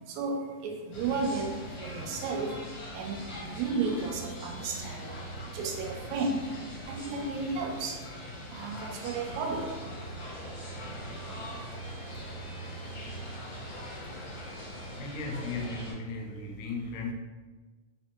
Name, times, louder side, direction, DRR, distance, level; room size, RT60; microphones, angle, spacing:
voice 1, 0.1-2.6 2.9-5.1 5.5-6.5 6.9-8.0 8.5-9.7, right 4 dB, 80° right, 1.8 m, -33 dB
sound 1, 0.9-15.9, equal, 60° left, 1.2 m, -41 dB
sound 2, 8.9-15.0, equal, 45° right, 0.6 m, -51 dB
voice 2, 14.9-17.1, left 3 dB, 85° left, 2.1 m, -36 dB
4.4 x 3.2 x 2.9 m
omnidirectional pair, 3.5 m